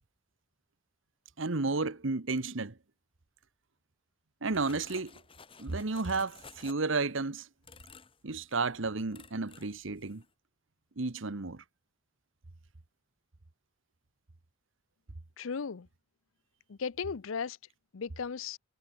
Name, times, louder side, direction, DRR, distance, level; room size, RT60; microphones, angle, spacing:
voice 1, 1.4-2.7 4.4-5.1 5.6-7.5 8.2-10.2 11.0-11.6, right 3 dB, 70° right, 1.2 m, -32 dB
sound 1, 4.5-7.1 7.6-8.2 8.5-8.7 9.1-9.8 10.0-10.3, left 5 dB, 25° left, 2.0 m, -54 dB
voice 2, 15.4-15.9 16.7-17.6 17.9-18.6, left 5 dB, 80° left, 0.6 m, -36 dB
head